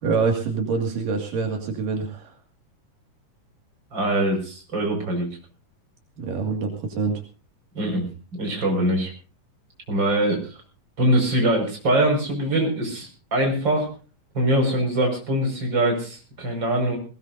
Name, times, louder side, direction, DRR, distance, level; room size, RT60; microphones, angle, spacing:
voice 1, 0.0-2.3 6.2-7.2, right 4 dB, 80° right, 3 dB, 3.9 m, -25 dB
voice 2, 3.9-5.3 7.7-9.1 9.9-10.6 11.0-13.9 14.3-17.0, right 1 dB, 30° right, 2 dB, 6.3 m, -23 dB
20.5 x 20.0 x 2.7 m, 0.35 s
omnidirectional pair, 3.8 m